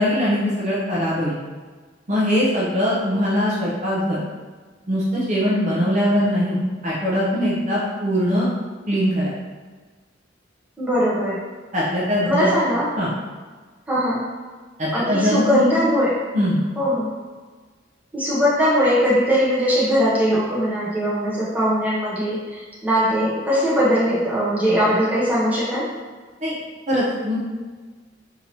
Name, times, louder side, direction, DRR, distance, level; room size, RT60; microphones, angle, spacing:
voice 1, 0.0-1.4 2.1-4.2 4.9-6.6 6.8-8.5 8.9-9.3 11.7-12.5 12.9-13.1 14.8-15.7 16.3-16.6 26.4-26.6 26.9-27.4, equal, 40° right, -7 dB, 0.7 m, -21 dB
voice 2, 10.8-11.4 12.2-12.9 13.9-14.2 14.9-16.2 16.8-17.1 18.1-25.9, equal, 10° right, -9 dB, 1.0 m, -20 dB
3.6 x 2.9 x 2.8 m, 1.4 s
head